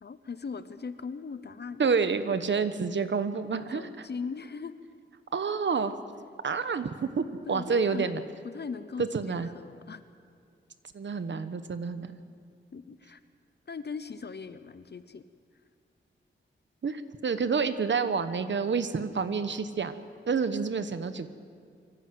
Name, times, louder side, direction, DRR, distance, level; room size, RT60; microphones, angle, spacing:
voice 1, 0.0-1.8 3.7-4.7 7.5-10.0 12.7-13.2 13.7-15.2, left 5 dB, 55° left, 12 dB, 0.8 m, -39 dB
voice 2, 1.8-3.9 5.3-6.0 6.4-8.2 9.0-9.5 10.9-12.2 16.8-21.3, right 5 dB, 65° right, 11 dB, 1.1 m, -29 dB
24.0 x 15.5 x 7.9 m, 2.3 s
wide cardioid pair, 120°, 20 cm